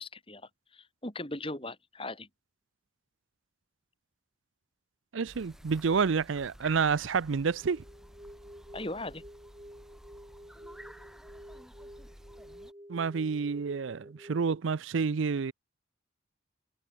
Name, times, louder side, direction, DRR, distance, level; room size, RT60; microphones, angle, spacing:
voice 1, 0.0-2.3 8.7-9.2, left 2 dB, 25° left, 5.2 m, -39 dB
voice 2, 5.1-7.8 12.9-15.5, right 5 dB, 80° right, 0.5 m, -29 dB
sound 1, 5.3-12.7, equal, ahead, 6.3 m, -53 dB
sound 2, 7.5-14.6, equal, 20° right, 7.9 m, -51 dB
head